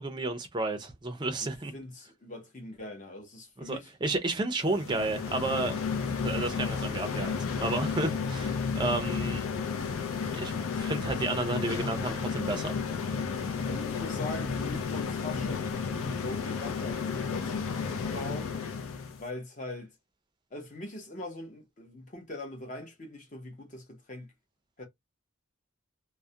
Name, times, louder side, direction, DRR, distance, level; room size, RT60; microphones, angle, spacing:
voice 1, 0.0-1.7 3.6-5.8 6.2-9.4 10.3-12.8, right 2 dB, 20° right, 0.4 m, -32 dB
voice 2, 1.7-3.9 13.7-18.5 19.2-19.9 20.5-24.3 24.8-24.9, left 2 dB, 35° left, 0.7 m, -42 dB
sound 1, 4.7-19.2, left 5 dB, 80° left, 0.5 m, -32 dB
2.3 x 2.1 x 2.7 m
head